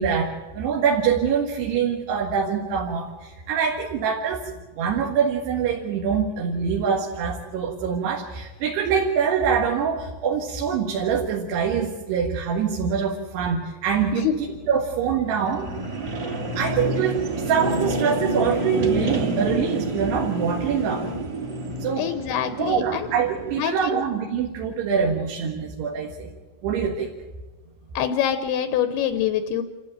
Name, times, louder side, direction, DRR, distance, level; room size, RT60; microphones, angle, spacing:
voice 1, 0.0-15.7 16.6-21.1 21.8-22.1 22.6-26.3 26.6-27.1, right 6 dB, 65° right, 1 dB, 3.4 m, -24 dB
sound 1, 13.9-23.7, right 2 dB, 30° right, 2.2 m, -29 dB
voice 2, 22.0-23.1 23.6-24.0 28.0-29.6, left 10 dB, 75° left, 9 dB, 2.5 m, -25 dB
28.0 x 13.5 x 8.9 m, 1.2 s
omnidirectional pair, 5.6 m